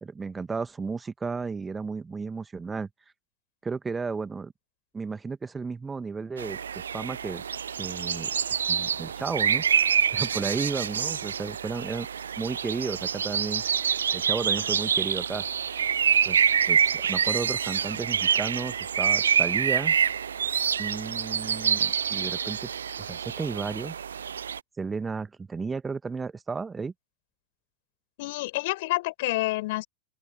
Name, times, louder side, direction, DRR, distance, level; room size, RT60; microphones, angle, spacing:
voice 1, 0.0-2.9 3.6-4.5 4.9-6.6 6.9-7.4 7.8-8.3 8.7-12.1 12.4-13.6 14.1-15.4 16.2-16.4 16.7-20.0 20.8-22.7 23.0-23.9 24.8-26.9, right 4 dB, 15° right, 1.5 m, -33 dB
sound 1, 6.4-24.6, right 7 dB, 70° right, 0.3 m, -26 dB
voice 2, 28.2-29.9, left 20 dB, 50° left, 4.7 m, -28 dB
open air
figure-of-eight pair, 90°, 0 cm